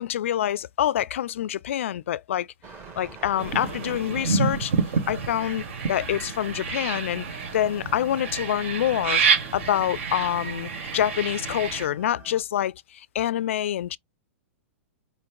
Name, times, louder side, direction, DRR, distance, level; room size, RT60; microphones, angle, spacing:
voice 1, 0.0-2.5 3.0-4.7 5.1-9.2 9.5-14.0, left 11 dB, 70° left, 0.4 m, -26 dB
sound 1, 2.6-12.4, right 6 dB, 30° right, 1.6 m, -48 dB
sound 2, 3.4-11.9, right 5 dB, 65° right, 1.6 m, -28 dB
5.0 x 2.1 x 4.6 m
hypercardioid pair, 110°, 7 cm